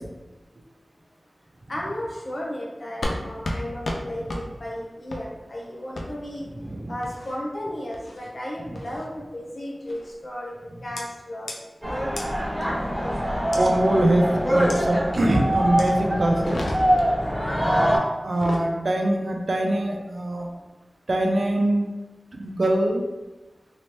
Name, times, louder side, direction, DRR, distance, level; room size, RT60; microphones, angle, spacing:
voice 1, 1.7-6.5 6.9-10.5 10.8-11.5, left 1 dB, 50° left, -4 dB, 0.8 m, -34 dB
sound 1, 3.0-3.2 3.4-3.6 3.8-4.0 4.3-4.4 5.1-5.2 6.0-6.1 7.0-7.4 7.9-8.3 8.8-9.1 9.9-10.1 11.0-11.1 11.5-11.6 12.2-12.3 13.5-13.7 14.7-14.8 15.8-15.9 16.3-17.1 18.2-18.7, left 1 dB, 75° left, 0.5 m, -32 dB
sound 2, 11.8-18.0, equal, 10° left, 1.5 m, -24 dB
voice 2, 13.5-16.6 18.2-20.5 21.1-21.9 22.3-23.1, right 1 dB, 60° right, 2 dB, 0.5 m, -23 dB
3.1 x 2.9 x 3.0 m, 1.1 s
wide cardioid pair, 75°, 0 cm